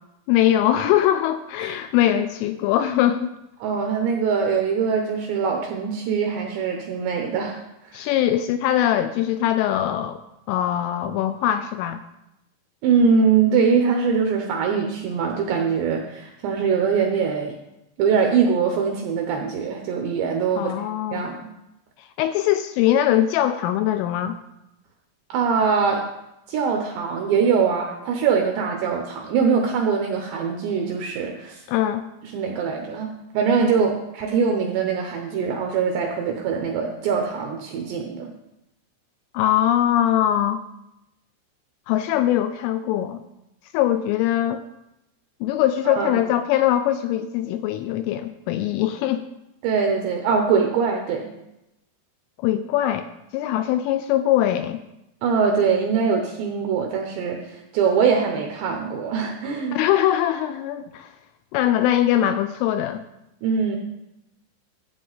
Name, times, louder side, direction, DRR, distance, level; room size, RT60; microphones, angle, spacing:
voice 1, 0.3-3.3 7.9-10.2 10.5-12.0 20.6-21.2 22.0-24.4 31.7-32.1 39.3-40.6 41.9-43.2 43.7-44.6 45.4-49.3 52.4-53.1 53.3-54.8 59.7-61.1 61.5-63.0, left 12 dB, 85° left, 10 dB, 2.9 m, -22 dB
voice 2, 3.6-8.1 12.8-17.6 18.0-20.7 21.1-21.5 25.3-26.0 26.5-31.6 32.2-38.3 45.9-46.2 49.6-51.3 55.2-59.8 63.4-63.8, right 6 dB, 80° right, 2 dB, 2.6 m, -22 dB
12.5 x 8.4 x 4.0 m, 0.89 s
omnidirectional pair, 6.0 m